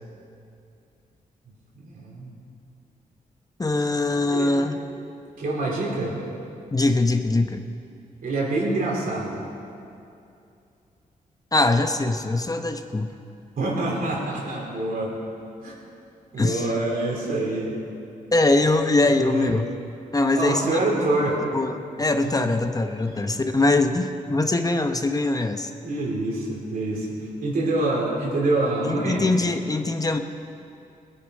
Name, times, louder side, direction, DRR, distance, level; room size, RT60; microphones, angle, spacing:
voice 1, 1.8-2.3 4.3-4.5 5.4-6.2 8.2-9.4 13.6-15.1 15.6-15.8 16.3-17.7 19.0-19.5 20.4-21.4 22.2-22.6 22.9-23.4 25.8-29.3, right 2 dB, 75° right, -3 dB, 3.7 m, -26 dB
voice 2, 3.6-4.8 6.7-7.6 11.5-13.1 16.4-16.7 18.3-19.7 20.1-20.8 21.2-21.7 22.0-25.7 28.8-30.2, left 2 dB, 25° left, 7 dB, 0.9 m, -22 dB
18.5 x 9.9 x 5.3 m, 2.6 s
cardioid pair, 70°, 15 cm